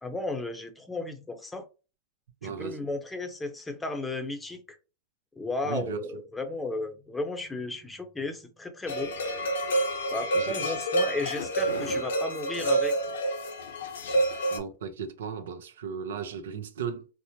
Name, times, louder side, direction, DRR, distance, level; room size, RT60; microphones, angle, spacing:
voice 1, 0.0-1.6 2.4-4.6 5.4-9.1 10.1-12.9, left 2 dB, 10° left, 0.7 m, -34 dB
voice 2, 2.4-2.8 5.6-6.1 10.3-10.7 14.5-17.1, right 6 dB, 80° right, 0.6 m, -36 dB
sound 1, 8.9-14.6, right 1 dB, 80° left, 1.0 m, -28 dB
4.2 x 2.0 x 2.8 m
hypercardioid pair, 115°, 0 cm